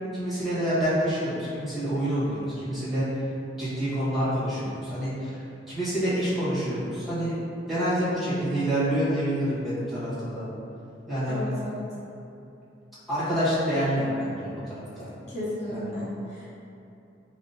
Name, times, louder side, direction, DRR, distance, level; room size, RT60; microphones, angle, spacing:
voice 1, 0.1-3.1 3.6-5.4 5.7-7.3 7.7-10.4 11.1-11.4 13.1-15.1 15.7-15.8, equal, ahead, -12 dB, 1.3 m, -27 dB
voice 2, 11.3-11.8 15.3-16.5, equal, 40° left, -9 dB, 0.9 m, -33 dB
4.9 x 2.1 x 2.7 m, 2.8 s
head